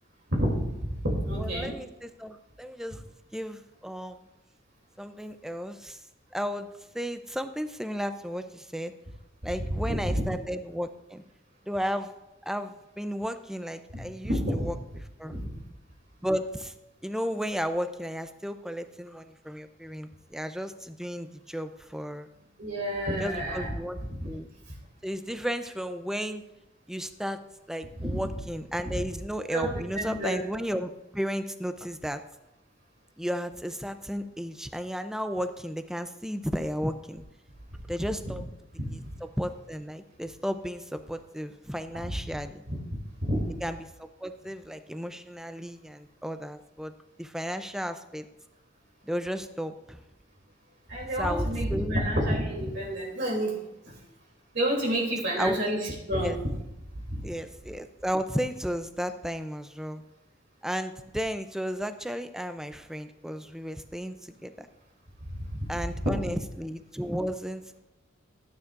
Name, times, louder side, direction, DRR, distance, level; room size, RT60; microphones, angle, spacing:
voice 1, 0.3-1.7 9.9-10.2 13.9-14.7 15.3-15.5 22.6-23.7 24.2-24.3 28.0-28.2 28.9-29.0 29.5-30.4 38.8-39.0 42.0-42.1 42.7-42.8 43.2-43.4 50.9-53.9 54.5-55.8 56.1-56.4 57.1-57.3 65.3-65.7 66.0-66.1, equal, 55° right, -2 dB, 2.9 m, -29 dB
voice 2, 1.4-3.0 3.3-4.2 5.0-6.0 6.3-6.7 6.9-8.9 9.4-11.2 11.7-12.1 12.4-15.4 16.2-16.7 17.0-22.3 23.2-24.0 24.2-24.5 25.0-26.4 26.9-27.4 27.7-32.2 33.2-37.2 37.9-38.4 38.8-42.6 43.6-46.9 47.2-48.3 49.0-50.0 51.2-52.0 55.4-55.6 56.1-56.4 57.2-60.0 60.6-64.7 65.7-67.8, equal, ahead, 9 dB, 0.5 m, -34 dB
16.5 x 9.7 x 2.5 m, 0.94 s
head